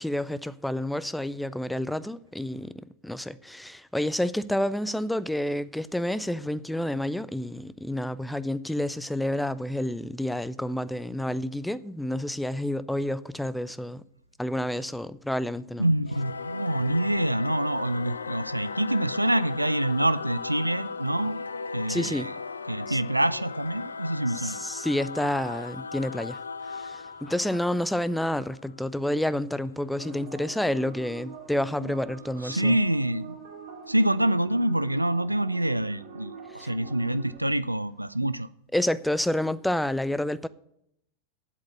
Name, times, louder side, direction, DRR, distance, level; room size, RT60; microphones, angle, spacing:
voice 1, 0.0-14.0 14.4-15.9 21.9-22.3 22.9-23.0 24.4-26.4 26.7-32.7 36.6-36.7 38.7-40.5, left 1 dB, 5° left, 0.4 m, -29 dB
voice 2, 15.8-21.4 21.7-22.3 22.6-24.6 31.8-31.9 32.4-33.4 33.9-38.5, right 1 dB, 85° right, 0.3 m, -26 dB
Singing / Musical instrument, 16.1-29.0, left 4 dB, 75° left, 0.4 m, -37 dB
sound 1, 30.0-37.4, right 6 dB, 60° right, 2.3 m, -44 dB
8.2 x 7.9 x 7.9 m
figure-of-eight pair, 90°, 0 cm